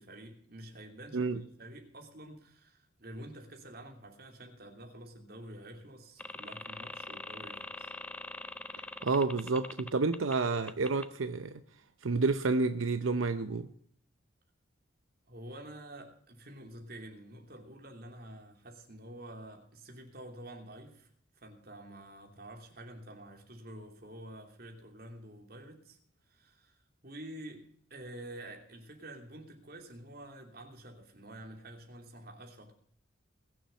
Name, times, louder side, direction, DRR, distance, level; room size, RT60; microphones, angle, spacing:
voice 1, 0.0-7.9 15.3-21.1 21.3-26.0 26.3-32.7, right 1 dB, 50° right, 3.0 m, -48 dB
sound 1, 6.2-10.3 10.7-11.1, left 2 dB, 5° left, 0.5 m, -43 dB
voice 2, 9.0-11.6 12.0-13.7, right 3 dB, 85° right, 0.7 m, -30 dB
21.0 x 7.3 x 5.5 m
head